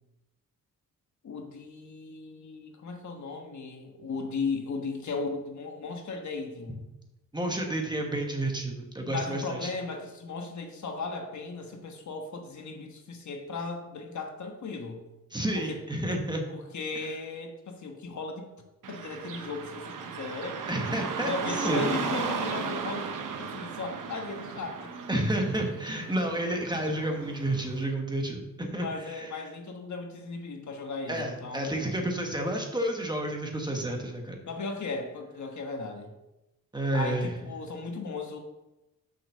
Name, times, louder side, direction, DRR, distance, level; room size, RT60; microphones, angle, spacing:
voice 1, 1.2-6.9 9.0-15.0 15.5-15.8 16.5-18.5 18.9-20.6 21.3-24.9 28.7-32.1 34.4-36.1 36.9-38.4, left 4 dB, 60° left, 3 dB, 1.3 m, -36 dB
voice 2, 7.3-9.7 15.3-16.4 16.9-17.1 20.7-21.8 25.1-29.3 31.1-34.4 36.7-37.3, right 1 dB, 15° right, 2 dB, 1.2 m, -30 dB
Car passing by / Traffic noise roadway noise, 18.8-27.9, right 6 dB, 70° right, 0.9 m, -36 dB
6.8 x 5.5 x 6.5 m, 0.98 s
wide cardioid pair, 140°, 33 cm